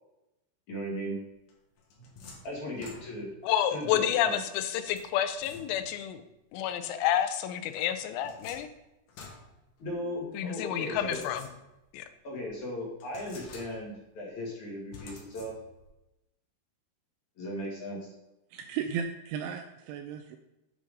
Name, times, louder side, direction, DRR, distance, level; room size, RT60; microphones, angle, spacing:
voice 1, 0.7-1.2 2.4-3.3 3.7-4.4 9.8-11.2 12.2-15.6 17.4-18.1, equal, 45° left, -3 dB, 2.8 m, -37 dB
sound 1, 1.5-3.5 4.9-6.1 7.7-10.2 10.9-11.9 12.4-12.5 13.0-14.1 14.9-15.9, left 4 dB, 75° left, 1.8 m, -50 dB
voice 2, 3.4-6.2 6.5-8.7 10.3-11.5 11.9-12.1, left 10 dB, 90° left, 10 dB, 3.5 m, -29 dB
voice 3, 18.5-20.4, right 7 dB, 85° right, 6 dB, 2.7 m, -35 dB
8.5 x 6.4 x 5.2 m, 0.93 s
omnidirectional pair, 5.9 m